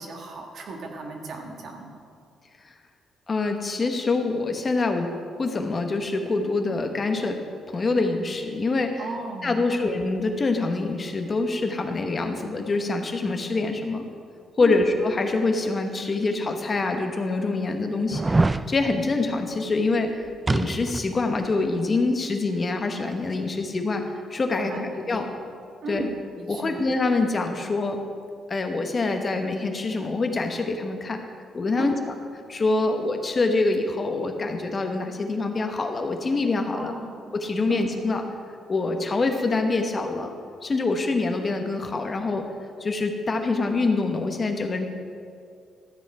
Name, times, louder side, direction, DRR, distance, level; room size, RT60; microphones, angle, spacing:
voice 1, 0.0-1.9 9.0-9.9 14.6-14.8 24.6-25.3 25.8-26.8 31.8-32.0 36.7-37.2 37.7-37.9, right 2 dB, 65° right, 1 dB, 1.6 m, -35 dB
voice 2, 3.3-7.4 7.7-9.0 9.4-14.0 14.6-24.0 24.3-24.7 25.1-25.3 25.9-26.0 26.5-28.0 28.5-31.2 31.5-32.0 32.5-36.9 37.3-38.2 38.7-40.3 40.6-42.4 42.8-44.9, left 3 dB, 35° left, 5 dB, 1.1 m, -25 dB
sound 1, 16.1-16.2 16.9-17.0 18.1-18.7 20.5-21.1 21.4-21.5, right 2 dB, 20° right, 0.3 m, -23 dB
13.0 x 7.1 x 4.8 m, 2.3 s
cardioid pair, 90°, 0 cm